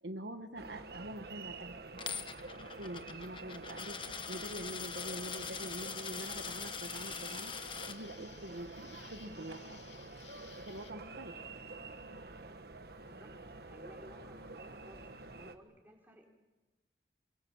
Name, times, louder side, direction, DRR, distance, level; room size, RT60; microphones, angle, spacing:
voice 1, 0.0-2.1 2.8-9.8 10.2-11.4, right 1 dB, 85° right, 7 dB, 1.6 m, -45 dB
sound 1, 0.6-15.6, right 3 dB, 60° right, 1.5 m, -49 dB
Coin (dropping), 2.0-7.9, left 6 dB, 30° left, 1.2 m, -42 dB
Insect, 5.3-10.9, left 7 dB, 80° left, 2.6 m, -57 dB
voice 2, 13.6-15.1 15.4-16.3, equal, 10° right, 0 dB, 4.4 m, -56 dB
29.0 x 23.5 x 7.3 m, 1.1 s
head